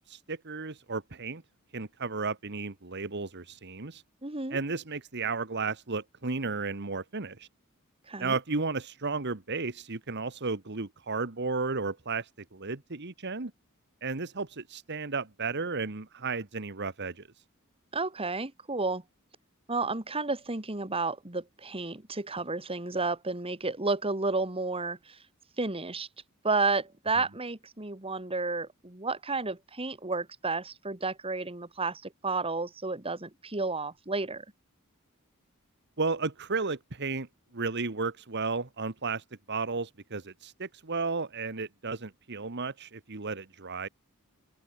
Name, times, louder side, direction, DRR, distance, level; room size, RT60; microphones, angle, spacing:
voice 1, 0.1-1.4 1.7-4.0 4.5-7.5 8.2-13.5 14.0-17.3 36.0-37.3 37.5-43.9, right 4 dB, 55° right, 1.6 m, -33 dB
voice 2, 4.2-4.6 8.1-8.4 17.9-19.0 19.7-25.2 25.6-26.1 26.4-34.4, right 3 dB, 25° right, 2.3 m, -31 dB
open air
head